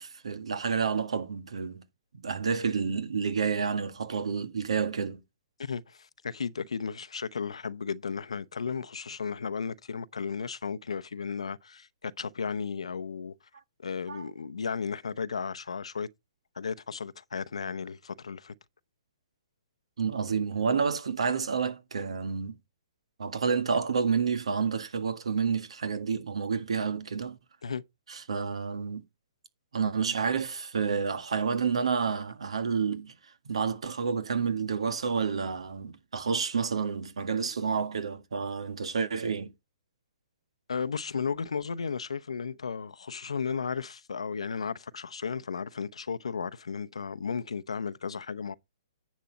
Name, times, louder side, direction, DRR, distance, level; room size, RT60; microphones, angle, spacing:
voice 1, 0.0-1.8 2.2-5.2 14.1-14.2 20.0-22.6 23.2-27.4 28.1-29.0 29.7-39.5, right 5 dB, 75° right, 1.7 m, -29 dB
voice 2, 5.6-13.3 13.8-16.1 16.6-18.5 27.6-27.8 40.7-48.5, left 5 dB, 80° left, 0.8 m, -34 dB
10.5 x 7.3 x 4.0 m
hypercardioid pair, 130°, 3 cm